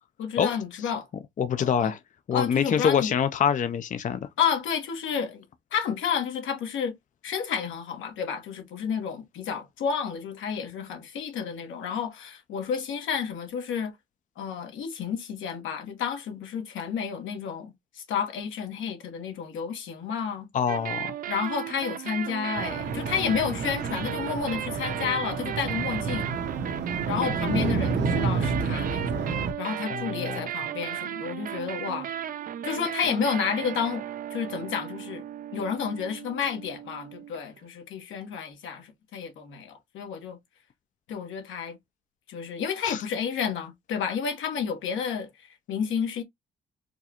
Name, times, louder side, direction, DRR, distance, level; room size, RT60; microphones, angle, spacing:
voice 1, 0.2-1.1 1.6-1.9 2.3-3.1 4.4-5.4 5.7-7.0 7.2-13.9 14.4-20.5 21.3-26.3 27.1-32.1 32.6-34.0 34.3-35.2 35.5-40.4 41.1-41.8 42.3-46.2, left 7 dB, 80° left, 1.3 m, -31 dB
voice 2, 1.4-2.0 2.3-4.3 20.5-21.1 29.9-30.5 42.8-43.0, left 7 dB, 40° left, 0.5 m, -25 dB
sound 1, 20.7-37.6, right 10 dB, 45° right, 0.4 m, -35 dB
sound 2, 22.5-29.5, right 4 dB, 60° right, 0.9 m, -30 dB
4.5 x 2.3 x 2.9 m
cardioid pair, 90°, 20 cm